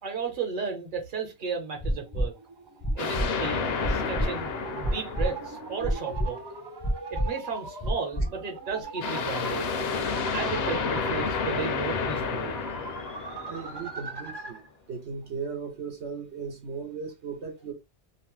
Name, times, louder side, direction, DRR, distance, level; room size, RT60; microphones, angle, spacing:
voice 1, 0.0-2.3 2.9-4.5 4.8-6.4 7.1-9.7 10.3-12.6, right 5 dB, 50° right, 1.1 m, -34 dB
sound 1, 1.8-2.3 2.8-3.3 3.8-4.3 4.8-5.3 5.8-6.3 6.8-7.3 7.8-8.3 8.8-8.9, equal, 25° left, 0.4 m, -26 dB
sound 2, 2.0-14.7, right 3 dB, 30° right, 0.5 m, -41 dB
sound 3, 3.0-6.1 9.0-14.2, left 5 dB, 65° left, 0.8 m, -31 dB
voice 2, 13.5-14.6 14.9-17.7, right 5 dB, 80° right, 1.0 m, -37 dB
2.8 x 2.1 x 3.0 m
omnidirectional pair, 1.1 m